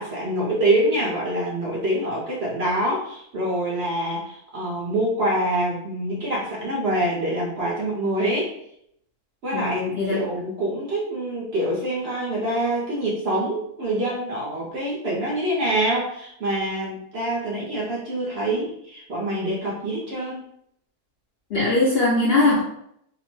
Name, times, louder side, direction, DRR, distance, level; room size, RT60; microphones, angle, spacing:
voice 1, 0.0-8.6 9.4-20.4, right 1 dB, 55° right, -5 dB, 0.8 m, -25 dB
voice 2, 9.5-10.2 21.5-22.6, left 2 dB, 60° left, -6 dB, 0.6 m, -20 dB
2.8 x 2.0 x 3.0 m, 0.73 s
omnidirectional pair, 1.6 m